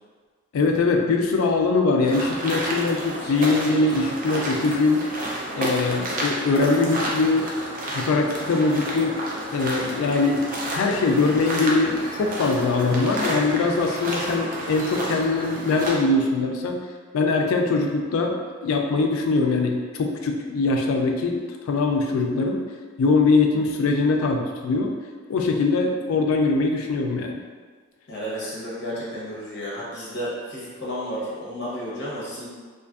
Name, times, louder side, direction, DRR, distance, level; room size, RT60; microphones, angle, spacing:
voice 1, 0.5-5.1 5.5-7.5 7.9-9.2 9.5-16.8 17.1-22.6 23.0-24.9 25.3-27.4, left 3 dB, 85° left, 2 dB, 0.3 m, -22 dB
sound 1, 2.0-16.0, right 1 dB, 45° right, 0.4 m, -31 dB
voice 2, 28.1-32.5, equal, 55° left, -6 dB, 0.9 m, -32 dB
2.5 x 2.4 x 2.4 m, 1.5 s
head